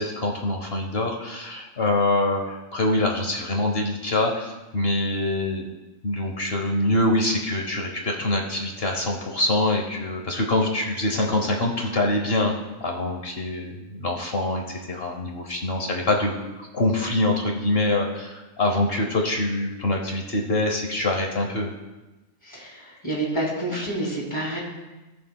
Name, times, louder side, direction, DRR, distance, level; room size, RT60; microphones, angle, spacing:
voice 1, 0.0-5.7 6.0-12.5 12.8-21.7, left 2 dB, 50° left, 1 dB, 1.1 m, -25 dB
voice 2, 22.4-24.6, right 1 dB, 20° left, -4 dB, 2.6 m, -28 dB
18.5 x 6.7 x 2.2 m, 1.1 s
omnidirectional pair, 1.4 m